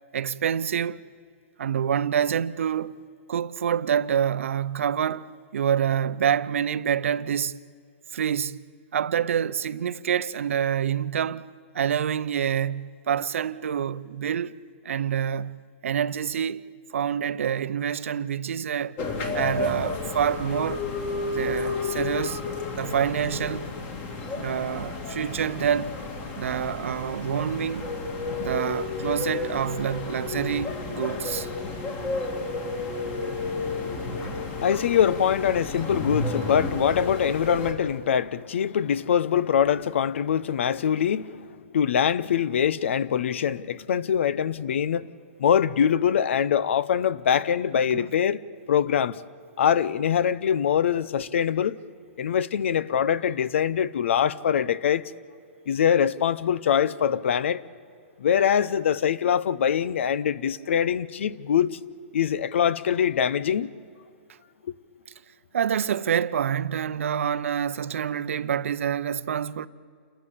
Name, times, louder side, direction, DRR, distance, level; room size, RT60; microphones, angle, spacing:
voice 1, 0.1-1.0 1.6-2.9 3.3-7.6 8.1-8.6 8.9-11.5 11.7-14.5 14.8-16.6 16.9-19.0 19.3-20.8 21.3-22.4 22.8-23.7 24.3-26.0 26.4-27.9 28.4-31.5 47.3-47.4 47.9-48.1 65.5-69.7, right 8 dB, 80° right, 0.8 m, -27 dB
sound 1, 19.0-37.7, left 3 dB, 25° left, 2.9 m, -32 dB
voice 2, 33.4-45.1 45.4-48.4 48.7-49.2 49.6-51.8 52.2-55.0 55.7-57.6 58.2-61.8 62.1-63.7, left 8 dB, 70° left, 0.8 m, -23 dB
29.0 x 14.0 x 8.6 m
hypercardioid pair, 160°, 7 cm